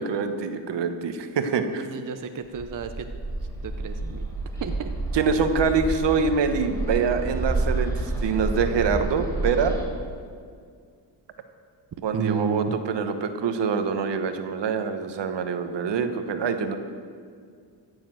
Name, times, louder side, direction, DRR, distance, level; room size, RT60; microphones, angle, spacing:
voice 1, 0.0-1.9 5.1-9.7 12.0-16.8, right 5 dB, 70° right, 8 dB, 1.3 m, -25 dB
voice 2, 1.9-3.1 3.6-4.2 4.6-4.9 12.1-12.8, right 7 dB, 45° right, 7 dB, 0.9 m, -31 dB
Bird, 2.5-9.8, right 2 dB, 5° left, 4.3 m, -29 dB
14.5 x 7.1 x 7.8 m, 2.1 s
cardioid pair, 85°, 45 cm